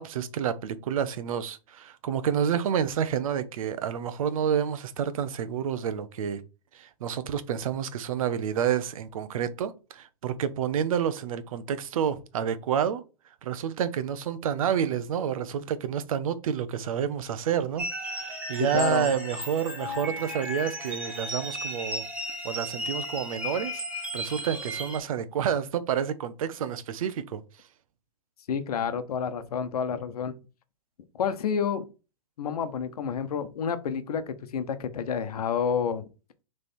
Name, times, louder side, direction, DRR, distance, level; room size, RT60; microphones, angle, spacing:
voice 1, 0.0-6.4 6.7-13.0 13.4-22.0 22.4-23.8 24.1-27.4, right 8 dB, 65° right, 0.8 m, -29 dB
sound 1, 17.8-25.0, equal, 5° right, 1.1 m, -35 dB
voice 2, 18.7-19.1 28.5-30.3 31.2-31.9 32.4-36.1, left 7 dB, 80° left, 0.9 m, -29 dB
6.6 x 3.4 x 4.3 m
hypercardioid pair, 155°, 19 cm